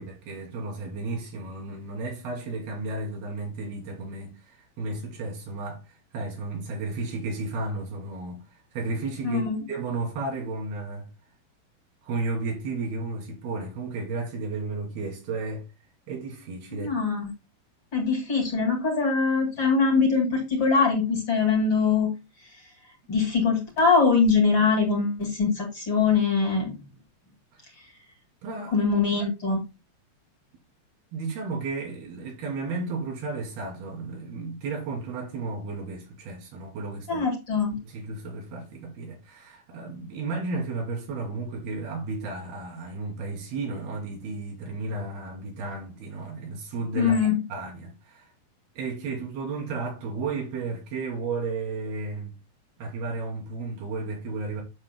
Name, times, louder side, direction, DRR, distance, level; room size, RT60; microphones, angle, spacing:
voice 1, 0.0-8.4 8.7-11.1 12.0-15.6 16.1-16.9 28.4-28.8 31.1-37.2 37.9-47.2 47.5-48.2 48.8-52.3 52.8-54.6, right 3 dB, 85° right, 4.6 m, -33 dB
voice 2, 9.2-9.7 16.7-17.3 17.9-22.1 23.1-26.7 28.7-29.6 37.1-37.8 46.9-47.4, left 5 dB, 35° left, 2.4 m, -23 dB
9.3 x 7.4 x 2.2 m
omnidirectional pair, 4.3 m